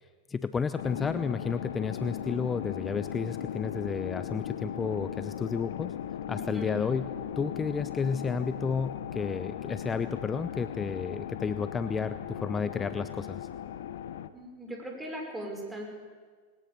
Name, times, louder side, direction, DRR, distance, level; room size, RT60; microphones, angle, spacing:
voice 1, 0.3-5.9 6.3-7.1 7.4-13.5, left 5 dB, 20° left, 12 dB, 0.7 m, -31 dB
sound 1, 0.8-14.3, left 10 dB, 70° left, 1.0 m, -37 dB
voice 2, 14.3-15.8, right 1 dB, 10° right, 1 dB, 5.9 m, -38 dB
20.5 x 19.5 x 7.0 m, 1.5 s
hypercardioid pair, 100°, 0 cm